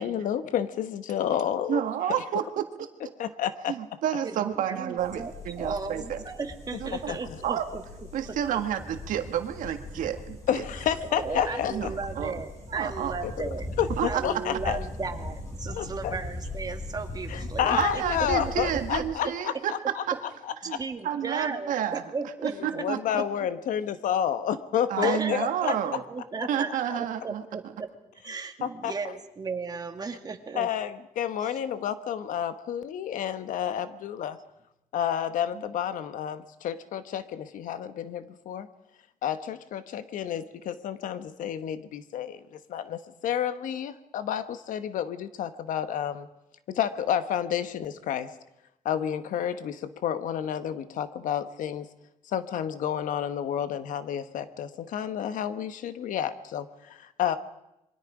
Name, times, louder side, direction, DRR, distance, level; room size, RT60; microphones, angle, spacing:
voice 1, 0.0-1.8 3.2-3.7 6.9-7.4 10.5-11.9 13.2-14.8 15.7-16.2 17.3-20.0 20.7-20.8 22.6-25.7 28.6-28.9 30.5-34.4 34.9-38.7 39.2-46.3 46.7-48.3 48.8-51.9 52.3-57.4, left 9 dB, 85° left, 12 dB, 1.2 m, -30 dB
voice 2, 1.7-2.6 3.0-3.1 3.7-6.2 6.8-7.1 7.4-7.6 8.1-10.6 11.7-12.3 12.7-13.2 13.9-14.2 17.8-20.1 20.6-22.0 22.4-23.2 24.9-26.0 26.5-27.4 35.5-35.6, right 10 dB, 90° right, 7 dB, 1.7 m, -30 dB
voice 3, 4.2-5.3 5.6-7.8 8.3-8.6 11.0-13.7 14.1-18.0 18.5-18.6 20.8-22.8 25.0-27.9 28.2-30.7, right 4 dB, 30° right, 5 dB, 2.2 m, -36 dB
sound 1, 5.0-19.0, left 2 dB, 25° left, 6.7 m, -39 dB
27.5 x 23.0 x 5.0 m, 0.88 s
cardioid pair, 125°, 13 cm